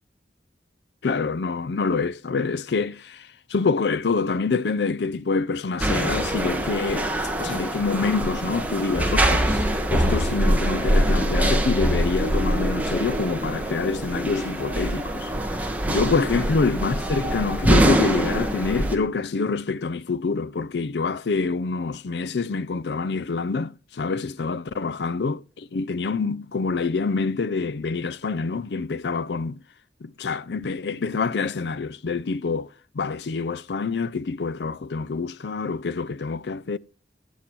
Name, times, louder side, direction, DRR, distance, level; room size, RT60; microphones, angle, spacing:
voice 1, 1.0-7.1 7.4-15.3 15.6-29.6 30.0-36.8, left 4 dB, 70° left, 0.5 m, -26 dB
sound 1, 5.8-19.0, right 1 dB, 10° right, 1.4 m, -23 dB
13.5 x 8.3 x 4.6 m
head